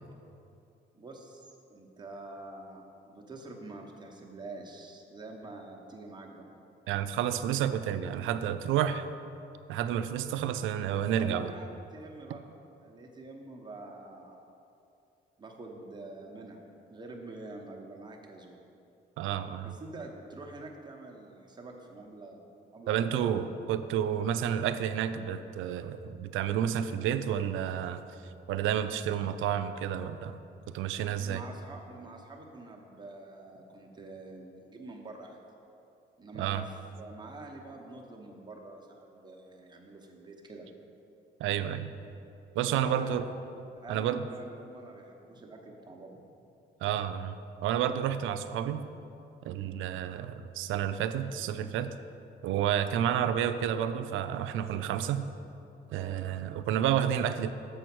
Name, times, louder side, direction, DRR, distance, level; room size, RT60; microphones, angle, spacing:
voice 1, 0.9-6.5 11.2-12.4 12.8-14.4 15.4-16.6 16.9-18.6 19.6-22.5 22.7-23.4 31.1-35.4 36.2-40.8 42.7-43.3 43.8-46.2 49.5-49.8 55.9-56.2, right 2 dB, 20° right, 0 dB, 1.1 m, -46 dB
voice 2, 6.9-9.0 9.7-11.5 19.2-19.7 22.9-28.0 28.5-30.4 30.7-31.4 36.4-36.6 41.4-41.9 42.6-43.3 43.9-44.3 46.8-48.9 49.4-52.0 52.4-55.3 55.9-57.5, right 9 dB, 85° right, 11 dB, 0.4 m, -30 dB
7.0 x 4.5 x 6.1 m, 2.7 s
cardioid pair, 90°, 20 cm